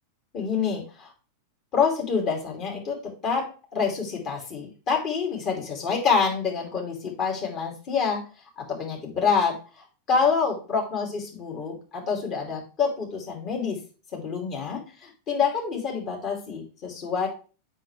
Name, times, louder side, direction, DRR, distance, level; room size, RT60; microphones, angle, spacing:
voice 1, 0.3-1.1 1.7-8.2 8.6-13.8 14.1-17.3, left 5 dB, 35° left, 0 dB, 2.6 m, -27 dB
7.7 x 5.6 x 3.2 m, 0.36 s
figure-of-eight pair, 90°, 0 cm